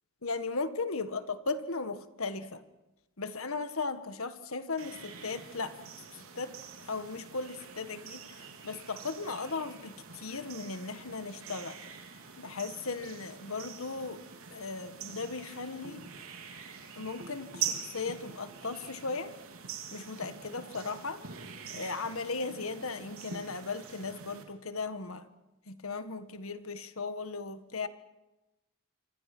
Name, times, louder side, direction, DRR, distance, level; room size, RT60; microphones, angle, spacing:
voice 1, 0.2-2.6 3.2-5.9 6.3-6.6 6.8-11.8 12.4-14.2 14.5-16.1 16.9-19.3 19.9-21.2 21.7-25.3 25.7-27.9, left 4 dB, 75° left, 11 dB, 1.7 m, -37 dB
sound 1, 4.8-24.4, right 7 dB, 80° right, 3.6 m, -44 dB
27.5 x 25.5 x 6.1 m, 1.0 s
head